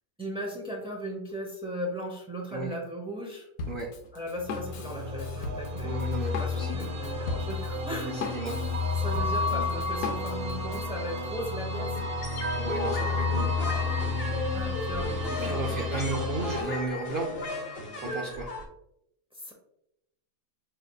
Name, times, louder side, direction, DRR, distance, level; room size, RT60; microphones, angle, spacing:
voice 1, 0.2-3.5 4.1-6.1 6.4-8.3 9.0-12.0 14.5-15.2 15.4-16.1 19.4-19.5, equal, 5° right, -1 dB, 0.5 m, -37 dB
Drum kit, 3.6-10.9, left 4 dB, 85° left, 1.1 m, -38 dB
sound 1, 4.3-16.6, left 3 dB, 45° right, 0.9 m, -31 dB
voice 2, 5.8-6.8 8.1-8.6 12.5-13.5 15.3-17.3 18.0-18.5, right 3 dB, 70° right, 1 dB, 0.5 m, -34 dB
sound 2, 11.9-18.7, left 2 dB, 50° left, 0.8 m, -35 dB
5.0 x 3.3 x 2.3 m, 0.80 s
omnidirectional pair, 1.5 m